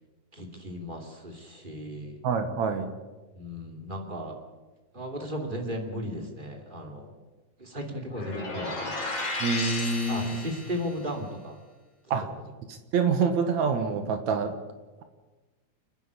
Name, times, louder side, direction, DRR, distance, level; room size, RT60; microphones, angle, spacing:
voice 1, 0.3-2.2 3.3-4.4 4.9-7.1 7.6-9.0 10.1-11.6 12.1-12.2, equal, 15° right, 2 dB, 2.8 m, -36 dB
voice 2, 2.2-2.9 9.4-10.5 12.1-12.3 12.7-14.5, right 5 dB, 70° right, 8 dB, 2.7 m, -26 dB
sound 1, 8.1-10.9, left 2 dB, 50° left, 6.4 m, -33 dB
28.5 x 10.0 x 9.7 m, 1.2 s
omnidirectional pair, 3.4 m